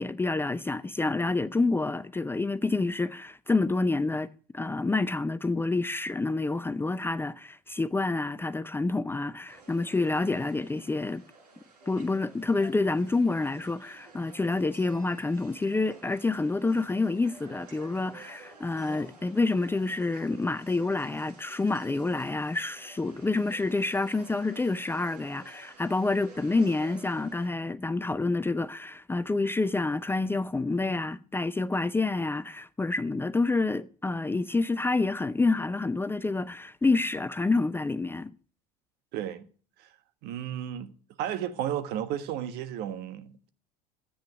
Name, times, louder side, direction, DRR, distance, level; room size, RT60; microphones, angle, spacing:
voice 1, 0.0-4.3 4.5-11.2 11.9-38.3, left 3 dB, 10° left, 0.5 m, -28 dB
sound 1, 9.5-27.5, right 3 dB, 80° right, 6.3 m, -53 dB
voice 2, 39.1-39.4 40.2-40.9 41.2-43.5, right 10 dB, 55° right, 1.4 m, -33 dB
13.5 x 8.7 x 6.2 m
hypercardioid pair, 70°, 20 cm